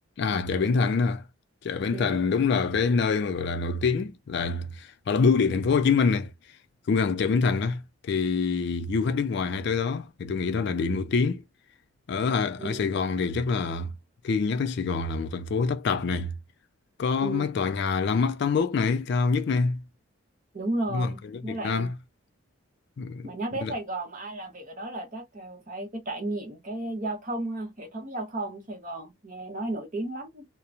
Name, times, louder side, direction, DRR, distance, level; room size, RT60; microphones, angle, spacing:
voice 1, 0.2-1.2 1.6-6.3 6.9-11.4 12.1-13.9 14.2-16.3 17.0-19.8 20.9-21.9 23.0-23.3 23.6-23.7, left 5 dB, 50° left, 0.3 m, -25 dB
voice 2, 12.6-12.9 17.2-17.6 20.5-21.9 23.2-30.5, right 2 dB, 35° right, 0.8 m, -34 dB
2.9 x 2.0 x 2.4 m
head